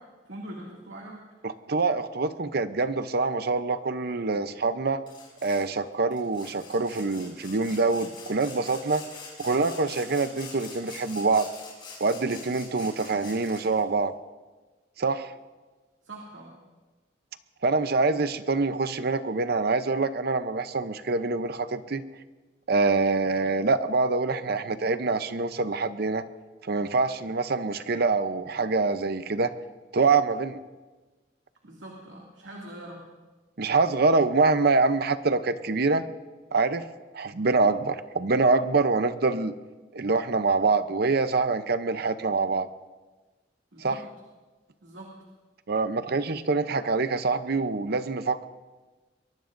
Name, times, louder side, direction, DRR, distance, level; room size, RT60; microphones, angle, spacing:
voice 1, 0.3-1.2 16.0-16.5 31.6-33.0 43.7-44.0 44.8-45.1, right 1 dB, 80° right, -2 dB, 2.5 m, -42 dB
voice 2, 1.4-5.0 5.4-9.0 9.4-11.5 12.0-14.1 15.0-15.3 17.6-22.0 22.7-26.2 26.6-29.5 29.9-30.6 33.6-36.1 36.5-36.8 37.1-39.5 39.9-42.7 43.8-44.0 45.7-48.4, right 3 dB, 60° right, 11 dB, 0.7 m, -25 dB
Sawing, 5.1-5.7 6.1-13.8, left 4 dB, 25° left, 6.3 m, -45 dB
23.0 x 23.0 x 2.6 m, 1.3 s
head